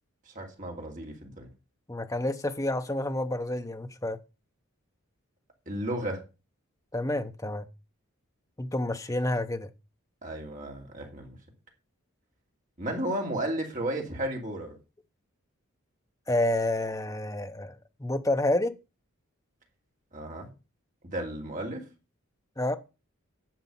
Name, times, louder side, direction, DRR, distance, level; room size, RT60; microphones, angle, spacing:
voice 1, 0.3-1.5 5.7-6.2 10.2-11.4 12.8-14.8 20.1-20.5 21.1-21.8, right 1 dB, 35° right, 2.7 m, -33 dB
voice 2, 1.9-4.2 6.9-7.6 8.6-9.7 16.3-18.8 22.6-22.8, left 1 dB, 15° left, 0.7 m, -29 dB
10.5 x 6.9 x 5.4 m
head